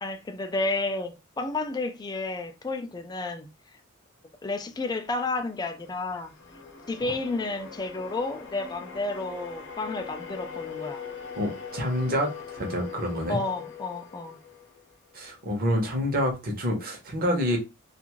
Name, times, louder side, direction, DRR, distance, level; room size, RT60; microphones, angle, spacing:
voice 1, 0.0-3.5 4.4-6.3 6.9-11.0 13.3-14.4, left 2 dB, 20° left, 0.3 m, -31 dB
sound 1, 5.0-15.3, left 6 dB, 60° left, 0.8 m, -42 dB
voice 2, 11.4-13.4 15.1-17.6, equal, 45° right, 0.8 m, -27 dB
2.5 x 2.4 x 3.0 m
head